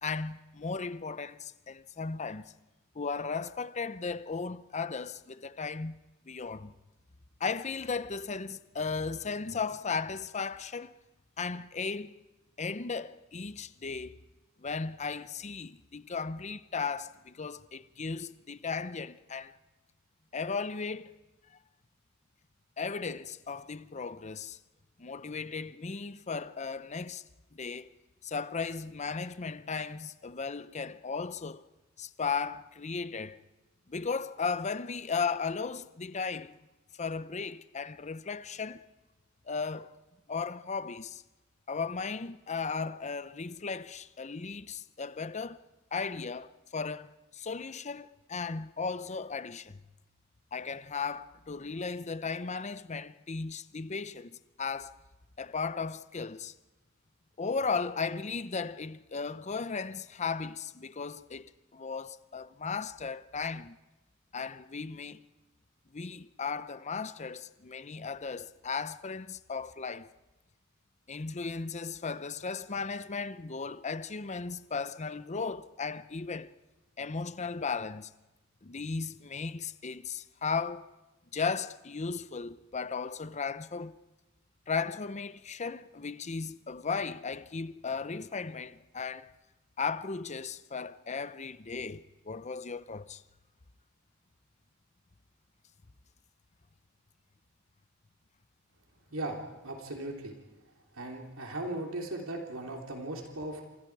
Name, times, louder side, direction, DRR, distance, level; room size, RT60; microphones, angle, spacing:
voice 1, 0.0-2.5 2.9-6.0 6.3-6.7 7.4-10.9 11.4-12.2 12.6-14.2 14.6-19.6 20.3-21.2 22.8-24.6 25.0-27.2 27.5-27.9 28.2-31.7 32.0-33.4 33.9-36.6 37.0-38.8 39.5-39.9 40.3-41.2 41.7-45.6 45.9-49.8 50.5-55.0 55.4-56.5 57.4-63.8 64.3-65.2 65.9-70.1 71.1-76.5 77.0-78.1 78.6-80.9 81.3-84.0 84.7-89.3 89.8-93.2, left 5 dB, 35° left, 0.7 m, -36 dB
voice 2, 99.1-100.3 100.9-103.6, right 1 dB, 75° right, 3.3 m, -38 dB
29.0 x 27.5 x 4.8 m
head